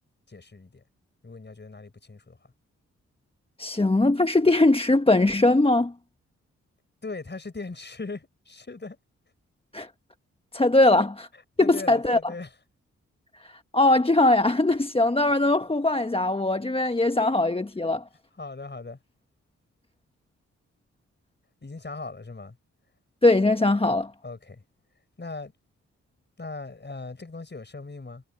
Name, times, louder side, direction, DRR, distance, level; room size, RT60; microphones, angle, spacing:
voice 1, 0.3-0.8 1.2-2.4 7.0-9.0 11.6-12.5 18.4-19.0 21.6-22.6 24.2-24.6 25.2-25.5 26.4-28.2, left 3 dB, 35° left, 6.1 m, -39 dB
voice 2, 3.6-5.9 9.7-9.9 10.5-11.3 11.6-12.2 13.4-18.0 23.2-24.1, left 2 dB, 20° left, 1.2 m, -21 dB
supercardioid pair, 40°, 30 cm